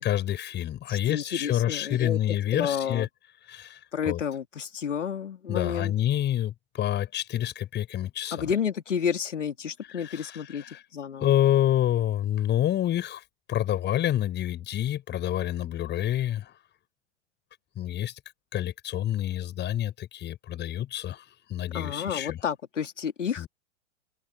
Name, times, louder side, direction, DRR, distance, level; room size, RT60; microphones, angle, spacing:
voice 1, 0.0-3.1 3.5-3.8 4.1-4.2 5.5-8.5 10.0-10.8 11.2-13.2 13.5-16.5 17.8-18.1 18.5-21.2 21.5-22.4 23.4-23.5, left 12 dB, 30° left, 7.5 m, -28 dB
voice 2, 0.9-3.1 3.9-5.9 8.3-10.6 10.9-11.3 21.7-23.5, left 7 dB, 80° left, 3.1 m, -31 dB
hypercardioid pair, 105°, 36 cm